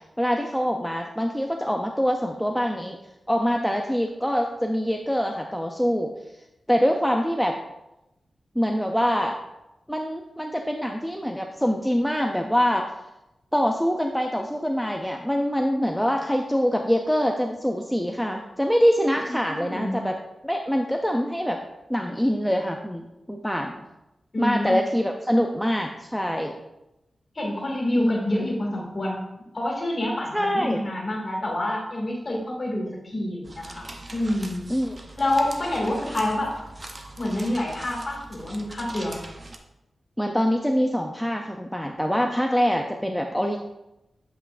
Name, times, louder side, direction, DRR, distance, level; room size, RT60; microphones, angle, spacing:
voice 1, 0.2-3.0 3.3-6.1 6.7-7.6 8.6-9.4 9.9-12.9 13.5-20.1 20.4-21.6 21.9-23.9 24.4-26.5 28.0-28.2 30.3-30.8 34.7-35.0 40.2-43.6, equal, ahead, 2 dB, 0.4 m, -24 dB
voice 2, 19.3-20.0 24.3-24.8 27.3-34.7 35.2-36.5 37.2-39.3, left 1 dB, 40° left, -2 dB, 2.0 m, -27 dB
sound 1, 33.4-39.6, right 2 dB, 35° right, 0.6 m, -41 dB
8.0 x 5.6 x 2.4 m, 0.93 s
wide cardioid pair, 100°, 0 cm